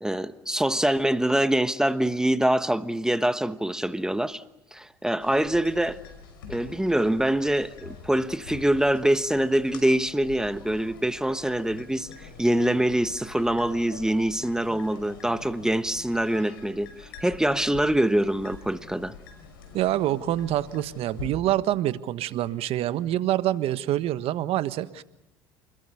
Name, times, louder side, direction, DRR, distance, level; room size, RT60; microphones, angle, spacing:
voice 1, 0.0-4.4 4.7-6.0 6.5-19.1, right 1 dB, 5° right, 1.2 m, -24 dB
sound 1, 5.2-21.3, left 5 dB, 85° left, 5.7 m, -45 dB
voice 2, 19.7-25.0, right 13 dB, 60° right, 1.4 m, -26 dB
29.5 x 21.5 x 6.7 m
hypercardioid pair, 75°, 11 cm